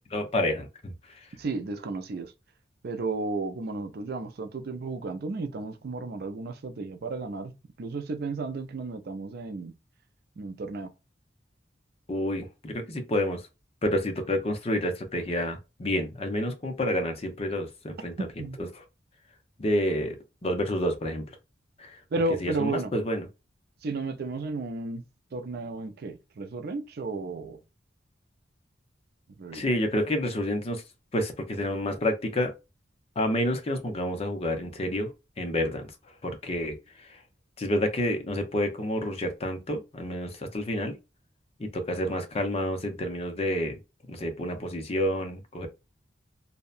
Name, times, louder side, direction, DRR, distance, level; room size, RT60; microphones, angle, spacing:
voice 1, 0.1-0.9 12.1-13.4 13.8-18.3 18.6-18.8 19.6-20.2 20.4-21.3 21.8-22.0 22.4-23.2 29.5-30.8 31.1-32.5 33.2-35.1 35.4-35.8 36.2-36.8 37.6-40.9 41.6-43.8 44.1-45.7, left 1 dB, 35° left, 0.6 m, -29 dB
voice 2, 1.4-2.3 2.8-7.5 7.8-9.7 10.4-10.9 18.2-18.6 22.1-22.9 23.8-25.0 25.3-27.6 29.4-29.6, right 3 dB, 55° right, 0.4 m, -33 dB
2.7 x 2.1 x 2.4 m
head